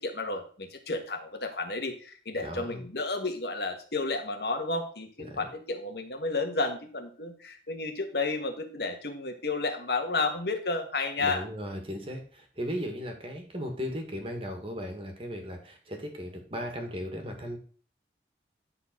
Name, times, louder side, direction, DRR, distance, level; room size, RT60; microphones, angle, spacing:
voice 1, 0.0-11.4, left 3 dB, 70° left, 4 dB, 1.6 m, -32 dB
voice 2, 2.4-2.8 5.2-5.5 11.2-17.6, equal, 30° right, 3 dB, 1.8 m, -37 dB
11.0 x 4.1 x 6.0 m, 0.43 s
head